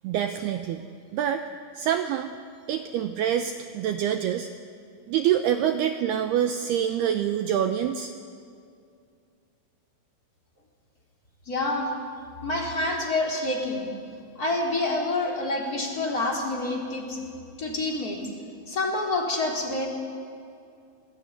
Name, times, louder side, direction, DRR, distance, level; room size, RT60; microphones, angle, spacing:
voice 1, 0.0-0.8 1.1-1.5 1.8-2.3 2.7-4.5 5.1-8.1, right 10 dB, 80° right, 8 dB, 2.3 m, -26 dB
voice 2, 11.5-11.9 12.4-13.9 14.4-17.2 17.6-18.2 18.7-19.9, left 2 dB, 20° left, 0 dB, 3.9 m, -27 dB
28.0 x 20.5 x 9.7 m, 2.4 s
omnidirectional pair, 5.6 m